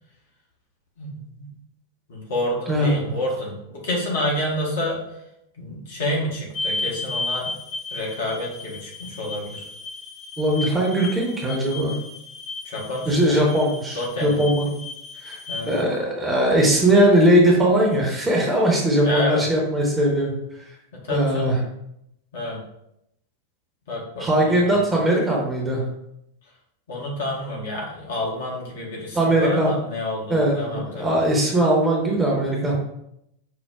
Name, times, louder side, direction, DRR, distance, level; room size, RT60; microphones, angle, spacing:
voice 1, 1.0-1.5 2.1-5.0 5.6-7.5 7.9-9.7 12.6-13.4 13.9-14.4 15.5-15.7 19.0-19.4 21.0-21.5 22.3-22.6 23.9-24.9 26.9-31.2, left 1 dB, 60° left, -3 dB, 0.9 m, -29 dB
voice 2, 2.7-3.1 10.4-11.9 13.1-14.8 15.2-15.4 15.7-20.7 21.1-21.6 24.2-25.8 29.1-29.7 30.3-32.7, right 1 dB, 15° right, -2 dB, 0.8 m, -20 dB
sound 1, 6.5-15.8, left 3 dB, 35° left, 0.6 m, -34 dB
4.7 x 2.0 x 2.3 m, 0.80 s
figure-of-eight pair, 90°, 0 cm